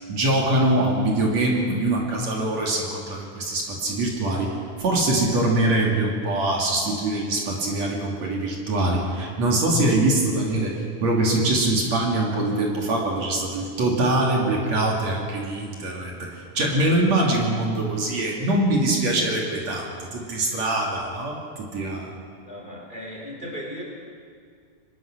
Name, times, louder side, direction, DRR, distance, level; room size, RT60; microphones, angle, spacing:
voice 1, 0.1-22.1, right 1 dB, 60° right, -2 dB, 3.8 m, -23 dB
voice 2, 22.4-23.8, equal, 15° left, -2 dB, 4.3 m, -36 dB
25.5 x 19.0 x 6.2 m, 2.1 s
omnidirectional pair, 3.5 m